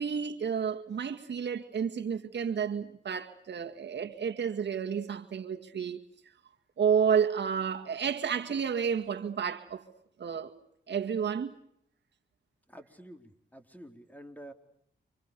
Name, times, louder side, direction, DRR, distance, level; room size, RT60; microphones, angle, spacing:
voice 1, 0.0-6.0 6.8-9.8 10.2-10.5 10.9-11.6, right 7 dB, 70° right, 2.0 m, -30 dB
voice 2, 12.7-14.5, right 1 dB, 10° left, 4.2 m, -49 dB
29.5 x 26.0 x 6.9 m
cardioid pair, 65°, 19 cm